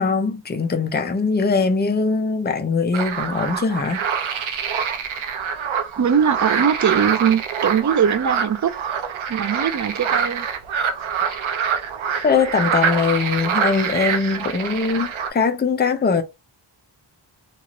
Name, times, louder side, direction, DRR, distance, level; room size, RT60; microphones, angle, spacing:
voice 1, 0.0-4.0 11.3-11.4 12.2-16.2, left 4 dB, 20° left, 0.5 m, -21 dB
sound 1, 2.9-15.3, right 7 dB, 90° right, 0.6 m, -25 dB
voice 2, 6.0-8.7 9.3-10.5, right 7 dB, 40° right, 0.4 m, -20 dB
2.9 x 2.4 x 2.9 m
wide cardioid pair, 95°, 46 cm